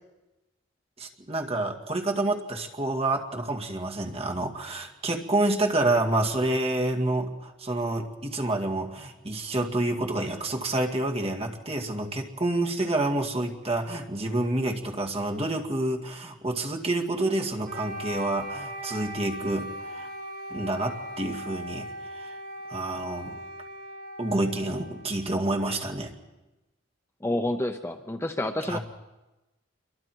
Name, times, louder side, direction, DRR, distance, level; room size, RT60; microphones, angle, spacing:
voice 1, 1.0-20.1 20.5-21.9 22.1-22.4 22.7-23.4 24.2-26.1 28.7-28.8, right 2 dB, 30° right, 1 dB, 2.1 m, -28 dB
Wind instrument woodwind instrument, 17.6-25.7, equal, 45° right, 2.1 m, -39 dB
voice 2, 27.2-28.8, left 1 dB, 15° left, 6 dB, 0.7 m, -29 dB
28.0 x 23.5 x 4.6 m, 1.1 s
head